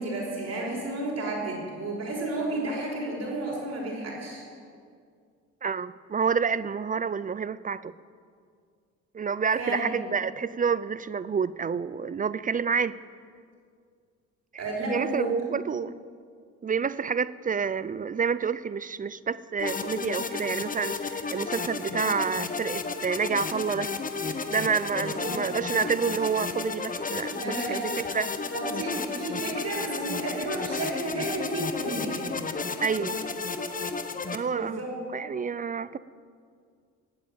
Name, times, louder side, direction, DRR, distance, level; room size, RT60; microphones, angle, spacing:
voice 1, 0.0-4.4 9.6-9.8 14.6-15.3 25.2-25.4 27.4-28.0 28.5-32.5 34.5-35.0, right 2 dB, 55° right, -2 dB, 5.1 m, -32 dB
voice 2, 5.6-7.9 9.1-13.0 14.5-14.6 14.9-15.9 16.6-23.9 24.5-28.3 32.8-33.2 34.3-34.8 35.1-36.0, right 6 dB, 30° right, 17 dB, 0.4 m, -29 dB
sound 1, 19.6-34.4, left 4 dB, 25° left, 1.0 m, -32 dB
15.5 x 8.8 x 8.9 m, 2.2 s
cardioid pair, 90°, 30 cm